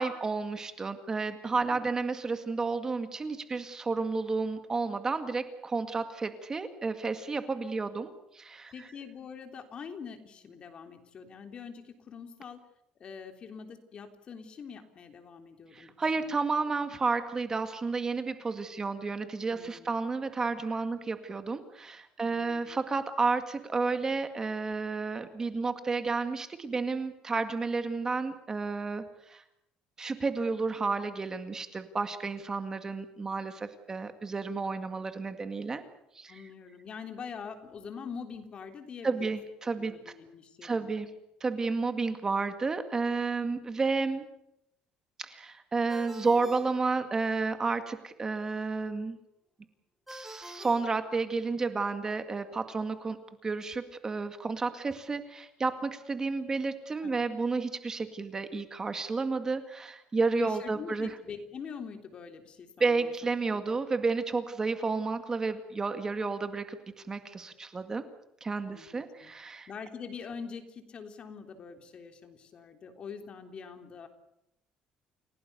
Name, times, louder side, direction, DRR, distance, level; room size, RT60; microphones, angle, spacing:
voice 1, 0.0-8.7 15.7-29.4 30.0-35.8 36.1-36.4 39.0-40.1 40.6-41.1 41.4-44.2 45.2-49.2 50.1-53.2 53.4-61.1 62.8-66.8 67.1-68.0 68.4-69.7, right 4 dB, 25° right, 8 dB, 2.0 m, -31 dB
voice 2, 8.7-12.6 13.0-16.4 19.5-20.0 22.2-22.8 36.3-39.2 39.8-41.0 57.0-57.3 60.4-63.1 63.5-63.6 68.6-69.3 69.7-74.1, left 6 dB, 40° left, 6 dB, 3.5 m, -44 dB
Ringtone, 45.9-47.6 50.1-51.7, equal, 5° right, 6.0 m, -48 dB
29.5 x 17.5 x 6.9 m, 0.81 s
cardioid pair, 125°, 3 cm